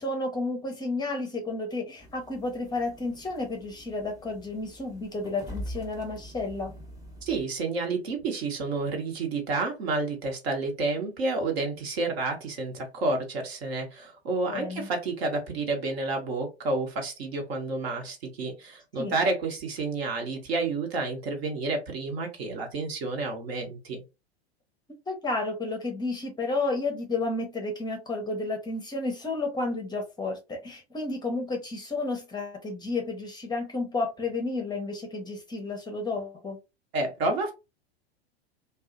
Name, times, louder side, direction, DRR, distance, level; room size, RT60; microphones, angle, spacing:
voice 1, 0.0-6.7 14.5-14.9 19.0-19.2 25.1-36.6, left 3 dB, 15° left, 0.6 m, -31 dB
sound 1, 2.0-7.4, equal, 10° right, 0.8 m, -44 dB
voice 2, 7.2-24.0 36.9-37.5, right 3 dB, 70° right, 1.1 m, -30 dB
2.6 x 2.3 x 2.5 m
hypercardioid pair, 105°, 33 cm